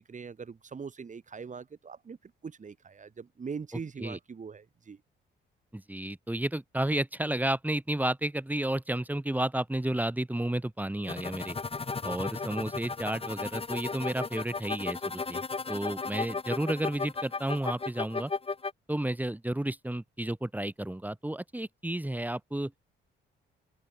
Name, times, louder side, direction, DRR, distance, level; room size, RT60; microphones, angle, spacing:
voice 1, 0.0-5.0, right 5 dB, 40° right, 7.2 m, -42 dB
voice 2, 5.7-11.6 12.0-15.4 15.7-18.3 18.9-22.7, right 1 dB, 10° right, 4.0 m, -32 dB
sound 1, 11.0-18.7, left 4 dB, 30° left, 6.6 m, -35 dB
cardioid pair, 90°, 20 cm